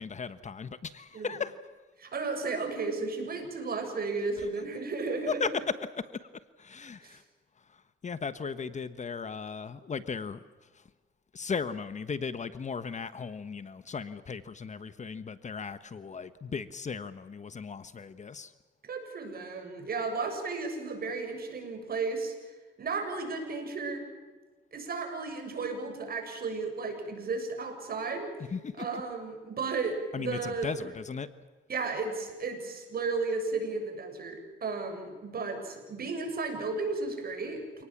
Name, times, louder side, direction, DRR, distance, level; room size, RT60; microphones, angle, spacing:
voice 1, 0.0-1.6 4.4-4.5 5.3-6.3 6.6-7.2 7.6-10.4 10.7-10.9 11.3-18.5 28.5-29.0 30.1-31.3, left 5 dB, 35° left, 13 dB, 1.3 m, -36 dB
voice 2, 2.0-5.3 7.0-7.2 18.8-22.5 22.8-24.1 24.7-28.3 28.8-30.7 31.7-37.8, right 4 dB, 50° right, 5 dB, 7.2 m, -34 dB
29.0 x 19.0 x 7.4 m, 1.3 s
cardioid pair, 90°, 20 cm